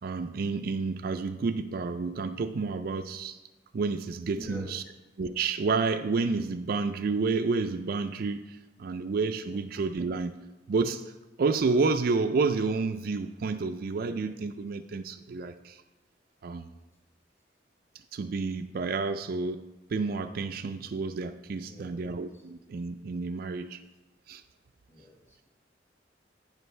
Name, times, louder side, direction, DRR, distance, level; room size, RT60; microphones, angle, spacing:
voice 1, 0.0-3.4 3.7-4.8 5.2-10.4 10.7-11.1 11.4-15.8 16.4-16.7 18.1-23.8 24.3-24.4, right 4 dB, 55° right, 8 dB, 0.4 m, -30 dB
voice 2, 4.3-4.9 21.6-22.4 24.9-25.5, left 1 dB, 15° left, -1 dB, 1.5 m, -47 dB
14.5 x 5.2 x 3.2 m, 1.1 s
head